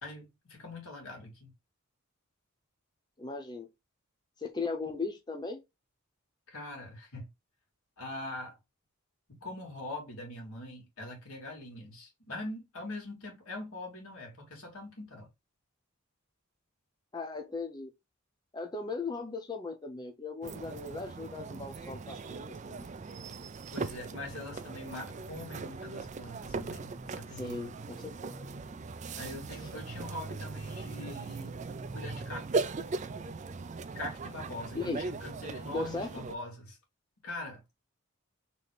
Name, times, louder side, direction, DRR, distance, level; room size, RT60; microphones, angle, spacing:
voice 1, 0.0-1.5 6.5-7.3 8.0-8.6 9.3-15.3 23.7-27.7 29.2-31.6 31.9-32.5 33.9-36.8 37.2-37.6, left 2 dB, 80° left, 2.3 m, -43 dB
voice 2, 3.2-3.7 4.4-5.6 17.1-17.9 18.5-22.9 27.3-28.5 29.6-29.7 34.7-35.0 35.6-36.1, left 3 dB, 20° left, 0.7 m, -38 dB
sound 1, 20.4-36.3, right 3 dB, 35° right, 0.4 m, -39 dB
4.1 x 3.2 x 3.3 m
head